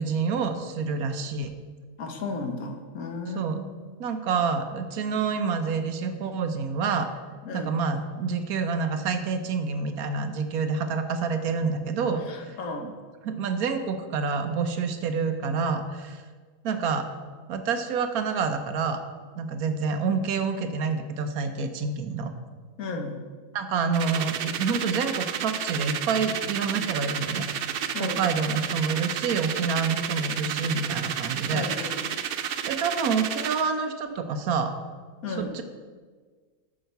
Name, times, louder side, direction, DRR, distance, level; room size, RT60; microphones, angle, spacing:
voice 1, 0.0-1.5 3.3-3.6 4.0-7.1 7.5-12.6 12.8-12.9 13.2-16.2 16.6-17.1 17.5-19.0 19.4-22.3 23.5-27.5 28.0-31.9 32.7-34.7 35.4-35.6, right 5 dB, 90° right, 8 dB, 1.3 m, -28 dB
voice 2, 2.0-3.6 7.4-7.8 12.1-12.9 22.8-23.2 27.9-28.2 31.5-32.1 35.2-35.6, left 3 dB, 80° left, 4 dB, 1.5 m, -34 dB
sound 1, 23.9-33.7, right 8 dB, 65° right, 0.5 m, -31 dB
8.8 x 5.6 x 6.8 m, 1.5 s
omnidirectional pair, 1.5 m